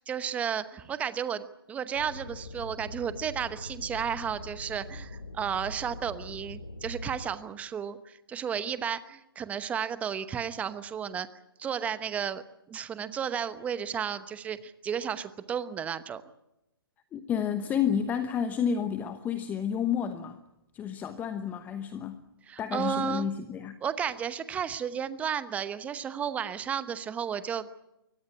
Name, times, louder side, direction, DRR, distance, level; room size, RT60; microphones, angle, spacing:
voice 1, 0.1-11.3 11.6-12.4 12.7-16.2 22.5-23.3 23.8-27.8, right 8 dB, 10° right, 14 dB, 1.0 m, -33 dB
sound 1, 2.0-7.3, left 2 dB, 90° left, 2.3 m, -42 dB
voice 2, 17.1-20.4 20.7-22.2 22.6-23.8, left 8 dB, 15° left, 10 dB, 1.0 m, -30 dB
23.5 x 18.0 x 9.9 m, 0.88 s
figure-of-eight pair, 140°, 13 cm